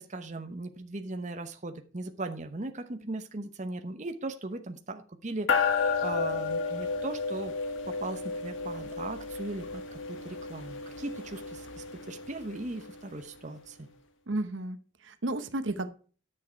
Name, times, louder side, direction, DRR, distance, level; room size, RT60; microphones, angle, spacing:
voice 1, 0.0-7.5 7.8-9.8 10.1-13.9, right 2 dB, 40° right, 7 dB, 0.9 m, -38 dB
sound 1, 5.5-13.2, left 5 dB, 90° left, 1.4 m, -32 dB
voice 2, 14.3-15.9, right 2 dB, 75° right, 11 dB, 0.9 m, -33 dB
10.5 x 6.3 x 4.6 m, 0.39 s
head